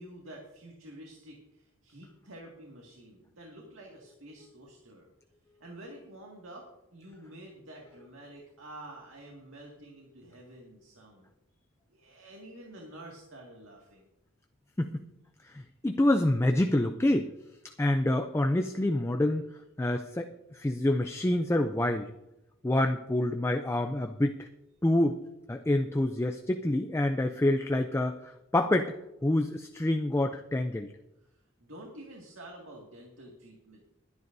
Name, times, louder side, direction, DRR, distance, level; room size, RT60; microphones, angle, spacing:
voice 1, 0.0-5.1 5.6-11.3 11.9-14.1 31.3-33.8, right 1 dB, 75° right, -1 dB, 2.1 m, -49 dB
voice 2, 15.4-17.3 17.8-19.5 19.8-22.1 22.6-24.5 24.8-25.2 25.5-29.0 29.2-30.9, left 1 dB, 15° left, 6 dB, 0.4 m, -27 dB
22.0 x 9.6 x 2.7 m, 0.92 s
head